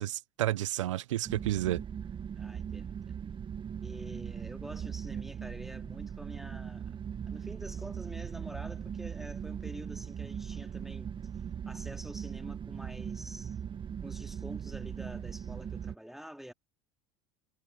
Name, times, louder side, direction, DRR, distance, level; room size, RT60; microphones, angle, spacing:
voice 1, 0.0-1.8, right 14 dB, 80° right, 0.6 m, -31 dB
sound 1, 1.2-15.9, right 8 dB, 30° right, 1.2 m, -39 dB
voice 2, 2.4-3.0 3.8-6.8 7.3-11.1 11.7-13.6 14.0-16.5, equal, ahead, 3.1 m, -47 dB
hypercardioid pair, 80°, 16 cm